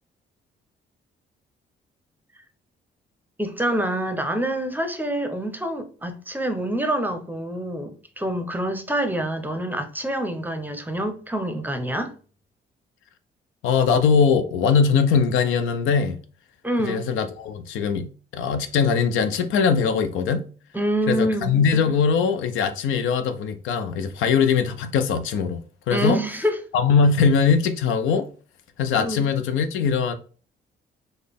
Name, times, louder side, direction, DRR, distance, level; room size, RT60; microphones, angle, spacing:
voice 1, 3.4-12.1 16.6-17.1 20.7-21.6 25.9-26.6 29.0-29.3, right 1 dB, 10° right, 0.6 m, -26 dB
voice 2, 13.6-16.2 16.8-20.5 21.1-25.6 25.9-26.2 26.7-28.3 28.8-30.1, left 6 dB, 85° left, 0.5 m, -21 dB
3.9 x 2.1 x 3.4 m
cardioid pair, 90°, 20 cm